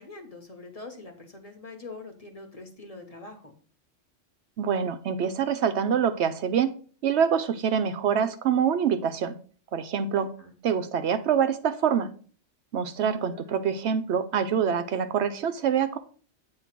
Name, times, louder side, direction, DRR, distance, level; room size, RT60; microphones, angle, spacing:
voice 1, 0.0-3.5 10.2-10.5 13.0-13.7, left 3 dB, 30° left, 4 dB, 1.0 m, -44 dB
voice 2, 4.6-6.7 7.0-9.3 9.7-10.3 10.6-12.1 12.7-16.0, right 7 dB, 70° right, 9 dB, 0.8 m, -25 dB
8.2 x 2.9 x 5.8 m, 0.42 s
omnidirectional pair, 1.2 m